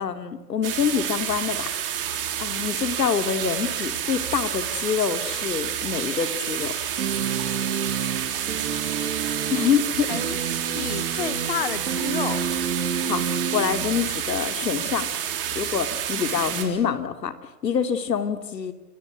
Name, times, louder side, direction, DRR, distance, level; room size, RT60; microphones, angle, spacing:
voice 1, 0.0-1.7 2.4-6.7 9.5-10.1 13.0-15.1 15.5-17.4 17.6-18.7, left 7 dB, 90° left, 9 dB, 3.1 m, -26 dB
sound 1, 0.6-16.6, right 9 dB, 35° right, 3.6 m, -29 dB
sound 2, 7.0-14.4, right 7 dB, 60° right, 4.7 m, -30 dB
voice 2, 8.6-9.0 10.1-12.4, left 9 dB, 35° left, 14 dB, 1.0 m, -32 dB
29.5 x 20.0 x 8.5 m, 0.97 s
hypercardioid pair, 180°, 48 cm